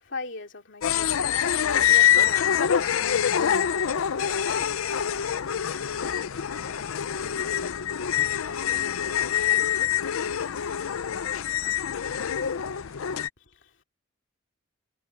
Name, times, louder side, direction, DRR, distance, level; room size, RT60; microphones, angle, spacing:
voice 1, 0.0-1.5 1.8-4.3 13.5-13.8, left 3 dB, 60° left, 2.6 m, -40 dB
sound 1, 0.8-13.3, left 9 dB, 85° left, 0.5 m, -25 dB
voice 2, 6.4-7.7 8.3-9.1 9.4-11.5 12.0-13.1, right 2 dB, 15° right, 6.8 m, -59 dB
head